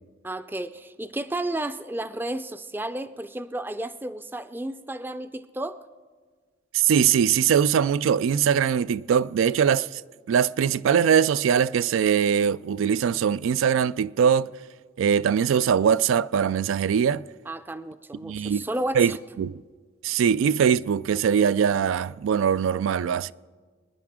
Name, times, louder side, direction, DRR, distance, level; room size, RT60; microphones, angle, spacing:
voice 1, 0.2-5.8 17.5-19.2, right 1 dB, 10° right, 0.4 m, -32 dB
voice 2, 6.7-10.0 10.3-14.5 15.0-17.2 18.2-18.6 18.9-19.6 20.0-23.3, right 7 dB, 90° right, 0.3 m, -22 dB
27.0 x 10.0 x 3.6 m
head